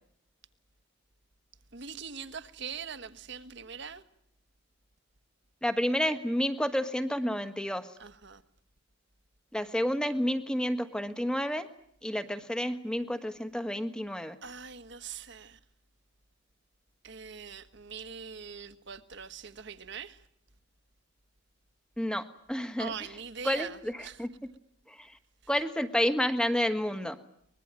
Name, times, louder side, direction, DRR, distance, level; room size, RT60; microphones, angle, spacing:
voice 1, 1.7-4.0 8.0-8.4 14.4-15.6 17.0-20.2 22.8-24.3, right 6 dB, 55° right, 1.5 m, -42 dB
voice 2, 5.6-7.9 9.5-11.7 12.0-14.4 22.0-22.9 23.4-24.3 25.0-25.1 25.5-27.2, equal, 5° left, 1.5 m, -30 dB
24.0 x 21.5 x 9.0 m
head